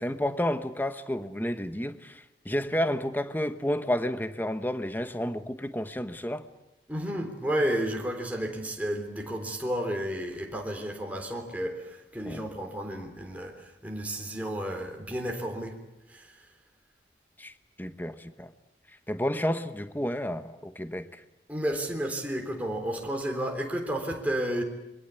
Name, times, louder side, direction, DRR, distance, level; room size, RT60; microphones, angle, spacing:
voice 1, 0.0-6.5 12.3-12.4 17.4-17.5 17.8-18.5 19.1-21.2, left 1 dB, 10° left, 1.1 m, -31 dB
voice 2, 6.9-15.7 16.1-16.4 21.5-24.6, right 1 dB, 10° right, 3.6 m, -32 dB
26.5 x 23.5 x 8.3 m
head